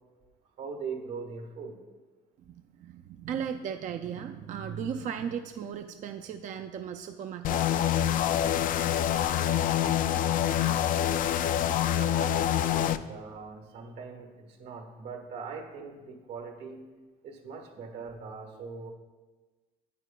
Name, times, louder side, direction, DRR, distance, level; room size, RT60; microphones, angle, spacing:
voice 1, 0.6-1.8 12.0-16.8 17.2-18.9, right 5 dB, 80° right, 4 dB, 1.4 m, -41 dB
voice 2, 2.4-7.6, right 7 dB, 50° right, 6 dB, 0.4 m, -36 dB
sound 1, 7.4-13.0, left 10 dB, 55° left, 0.4 m, -26 dB
9.7 x 9.4 x 2.3 m, 1.3 s
cardioid pair, 110°, 17 cm